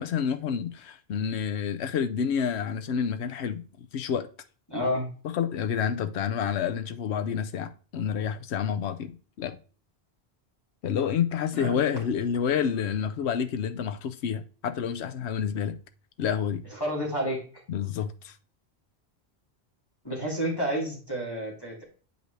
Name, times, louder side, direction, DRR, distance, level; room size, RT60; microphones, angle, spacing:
voice 1, 0.0-4.3 5.2-9.6 10.8-15.8 16.2-16.6 17.7-18.3, left 7 dB, 85° left, 1.0 m, -29 dB
voice 2, 4.7-5.1 11.5-11.8 16.7-17.4 20.0-21.8, equal, 20° left, 2.8 m, -30 dB
9.0 x 5.4 x 3.2 m
omnidirectional pair, 1.1 m